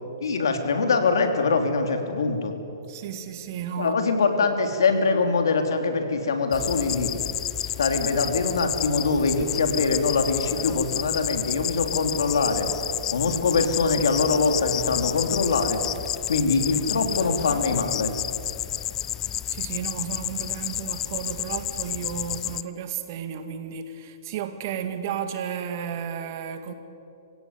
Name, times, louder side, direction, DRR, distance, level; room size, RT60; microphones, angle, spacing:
voice 1, 0.2-2.5 3.8-7.1 7.8-12.7 13.1-15.8 16.3-18.1, left 4 dB, 85° left, 5 dB, 3.2 m, -23 dB
voice 2, 2.9-4.0 19.5-26.7, right 8 dB, 45° right, 8 dB, 2.1 m, -33 dB
sound 1, 6.5-22.6, left 11 dB, 20° left, 0.5 m, -30 dB
26.0 x 16.5 x 9.6 m, 2.8 s
hypercardioid pair, 150°, 2 cm